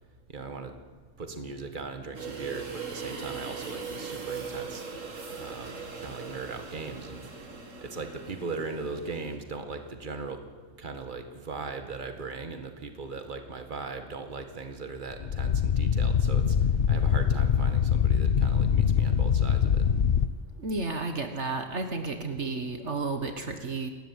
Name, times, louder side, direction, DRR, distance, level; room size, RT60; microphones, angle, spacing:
voice 1, 0.3-0.8 1.2-4.9 5.4-10.4 10.8-19.9, right 4 dB, 40° right, 7 dB, 1.9 m, -39 dB
sound 1, 2.1-9.4, right 5 dB, 90° right, 2.6 m, -39 dB
sound 2, 15.1-20.3, left 7 dB, 50° left, 0.9 m, -24 dB
voice 2, 20.6-23.9, right 3 dB, 65° right, 6 dB, 1.8 m, -32 dB
28.5 x 13.5 x 9.5 m, 1.4 s
omnidirectional pair, 1.3 m